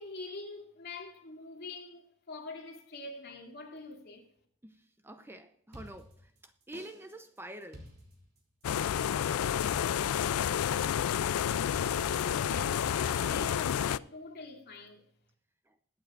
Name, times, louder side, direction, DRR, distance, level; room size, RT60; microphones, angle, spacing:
voice 1, 0.0-4.3 11.9-15.1, left 3 dB, 50° left, 2.6 m, -45 dB
voice 2, 4.6-7.8 15.7-15.8, right 1 dB, 10° right, 0.6 m, -47 dB
sound 1, 5.7-6.4 6.7-7.2 7.6-8.4 8.7-9.2 9.7-10.4 10.7-11.2 11.7-13.7, equal, 45° right, 3.2 m, -50 dB
sound 2, 8.6-14.0, left 9 dB, 70° left, 0.4 m, -30 dB
21.0 x 9.1 x 2.5 m
head